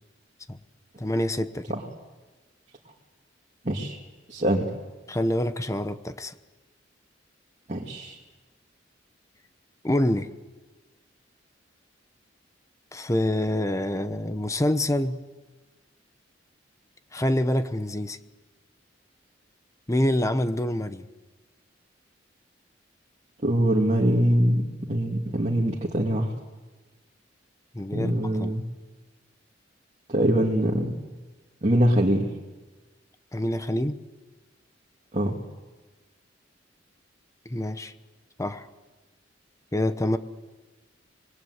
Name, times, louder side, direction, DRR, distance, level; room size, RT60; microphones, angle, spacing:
voice 1, 1.0-1.7 5.1-6.3 9.8-10.3 12.9-15.2 17.1-18.2 19.9-21.0 27.7-28.6 33.3-34.0 37.4-37.9 38.4-38.7 39.7-40.2, left 1 dB, 15° left, 11 dB, 0.9 m, -26 dB
voice 2, 3.6-4.0 4.3-4.7 7.7-8.2 23.4-26.3 27.9-28.6 30.1-30.9 31.6-32.2 35.1-35.3, right 1 dB, 40° right, -1 dB, 2.3 m, -23 dB
26.0 x 22.0 x 8.1 m, 1.2 s
head